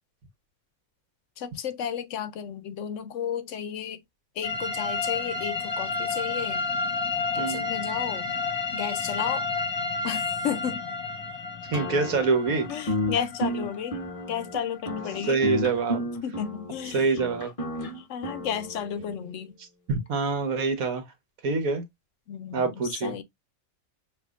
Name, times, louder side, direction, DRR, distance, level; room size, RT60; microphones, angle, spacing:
voice 1, 1.4-4.0 4.4-6.6 7.3-8.3 8.7-9.5 10.0-10.9 12.7-14.0 14.3-15.4 16.2-17.1 18.1-19.5 22.3-22.7 23.0-23.2, left 8 dB, 70° left, 0.9 m, -32 dB
sound 1, 4.4-16.0, left 4 dB, 20° left, 0.9 m, -31 dB
sound 2, 11.7-19.1, left 1 dB, 40° left, 0.5 m, -32 dB
voice 2, 11.7-12.7 15.2-16.0 16.9-17.5 19.9-21.0 21.4-21.8 22.5-23.2, right 4 dB, 80° right, 1.5 m, -25 dB
6.8 x 2.4 x 2.4 m
omnidirectional pair, 1.4 m